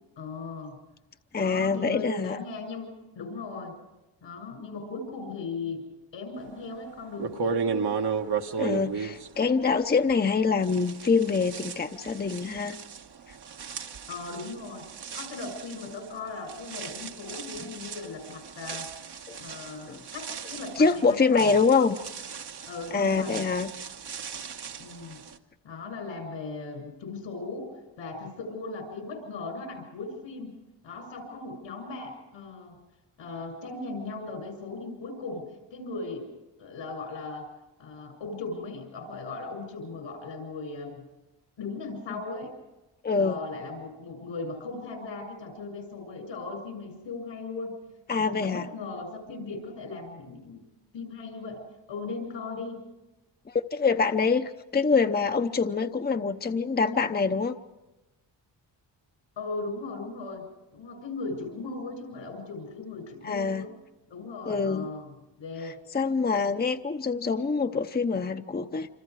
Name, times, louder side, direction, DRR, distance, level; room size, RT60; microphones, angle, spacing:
voice 1, 0.2-0.8 1.3-2.9 3.2-3.8 4.2-5.8 6.1-7.9 14.1-14.8 15.1-18.9 19.4-21.4 22.6-23.5 24.8-25.2 25.6-27.7 28.0-30.5 30.8-32.7 33.2-35.4 35.7-36.2 36.6-37.5 37.8-41.1 41.6-42.5 43.2-47.8 48.1-50.6 50.9-51.6 51.9-52.8 59.4-60.4 60.7-63.7 64.1-65.1 65.4-65.8, left 3 dB, 90° left, 4 dB, 7.3 m, -38 dB
voice 2, 1.3-2.4 8.6-12.8 19.3-19.4 19.9-20.0 20.8-22.0 22.9-23.7 42.1-42.2 43.0-43.4 48.1-48.7 53.5-57.5 63.2-63.7 64.5-64.9 65.6-68.9, left 4 dB, 20° left, 7 dB, 0.8 m, -25 dB
sound 1, 6.6-6.7 7.2-10.3 10.6-25.4, right 5 dB, 60° right, 1.4 m, -36 dB
27.5 x 26.0 x 4.9 m, 1.0 s
cardioid pair, 85°, 44 cm